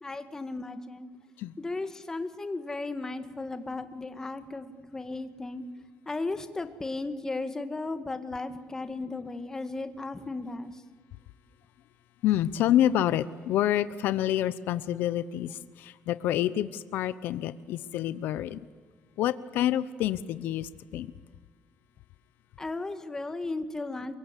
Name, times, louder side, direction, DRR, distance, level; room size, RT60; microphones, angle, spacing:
voice 1, 0.0-1.1 1.6-5.6 6.1-10.8 22.6-24.1, left 3 dB, 15° left, 8 dB, 1.9 m, -35 dB
voice 2, 12.2-18.6 19.2-21.1, left 12 dB, 80° left, 15 dB, 0.8 m, -28 dB
29.5 x 23.5 x 8.3 m, 1.5 s
cardioid pair, 130°, 3 cm